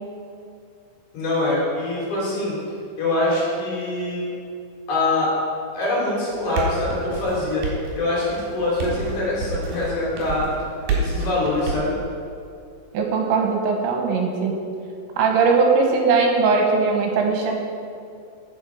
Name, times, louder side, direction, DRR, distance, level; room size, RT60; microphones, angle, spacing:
voice 1, 1.1-2.6 3.0-4.3 4.9-5.3 5.7-10.5 11.0-11.9, left 2 dB, 55° left, -6 dB, 4.7 m, -24 dB
sound 1, 6.3-11.9, right 3 dB, 55° right, 3.8 m, -29 dB
voice 2, 12.9-14.6 15.2-17.5, right 4 dB, 75° right, 1 dB, 3.3 m, -19 dB
13.5 x 8.1 x 5.0 m, 2.5 s
omnidirectional pair, 5.4 m